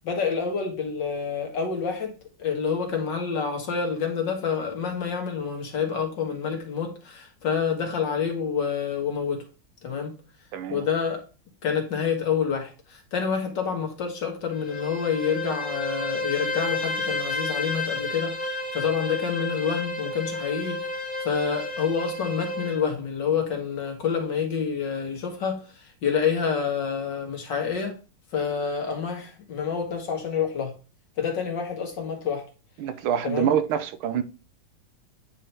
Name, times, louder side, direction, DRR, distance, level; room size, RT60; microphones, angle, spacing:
voice 1, 0.0-9.4 9.8-10.1 10.7-11.2 11.6-20.9 21.2-28.0 28.3-30.7 31.2-32.4 33.2-33.5, left 6 dB, 60° left, 2.2 m, -28 dB
voice 2, 10.5-10.9 32.8-34.2, right 9 dB, 80° right, 1.5 m, -26 dB
Bowed string instrument, 14.5-22.8, left 2 dB, 25° left, 1.8 m, -31 dB
9.3 x 3.9 x 4.4 m
omnidirectional pair, 2.3 m